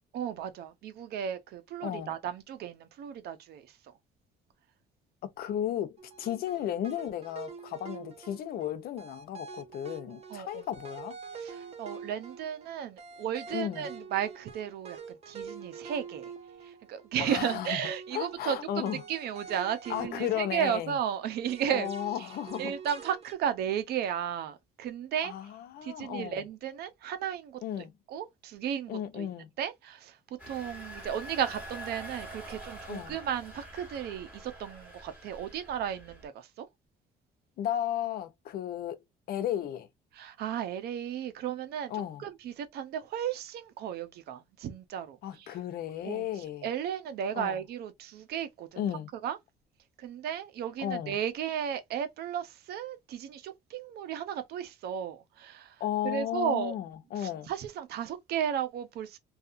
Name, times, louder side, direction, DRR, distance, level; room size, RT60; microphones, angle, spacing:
voice 1, 0.1-3.7 10.3-10.6 11.4-15.0 15.3-16.3 16.6-21.9 22.1-22.3 22.6-25.3 25.8-29.3 29.6-30.2 30.5-36.7 40.1-41.9 42.2-45.5 46.0-46.3 46.6-48.9 49.2-49.4 50.0-55.8 56.0-56.7 57.2-59.2, right 9 dB, 70° right, 0.7 m, -34 dB
voice 2, 1.8-2.1 5.4-11.2 13.5-13.9 17.2-17.8 18.1-19.0 19.9-20.9 21.7-22.7 25.2-26.4 27.6-27.9 28.9-29.5 32.9-33.2 37.6-39.0 39.3-39.9 41.9-42.2 45.2-46.7 47.3-47.6 48.8-49.1 50.8-51.2 55.8-57.5, left 11 dB, 65° left, 0.6 m, -34 dB
sound 1, 6.0-17.1 17.5-21.1 21.5-23.3, right 5 dB, 40° right, 0.9 m, -46 dB
Engine, 30.4-36.3, equal, 10° right, 1.6 m, -45 dB
2.7 x 2.4 x 2.4 m
cardioid pair, 110°, 17 cm